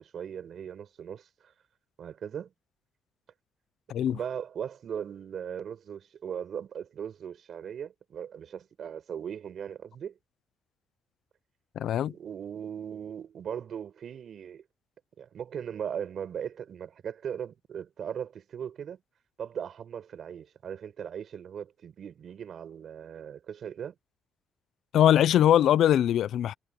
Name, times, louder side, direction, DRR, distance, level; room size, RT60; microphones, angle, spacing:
voice 1, 0.0-1.5 2.0-2.5 4.1-10.2 12.1-14.6 15.2-19.0 19.4-23.9, right 8 dB, 60° right, 7.9 m, -38 dB
voice 2, 11.8-12.1 24.9-26.5, left 11 dB, 75° left, 0.8 m, -22 dB
cardioid pair, 90°, 0 cm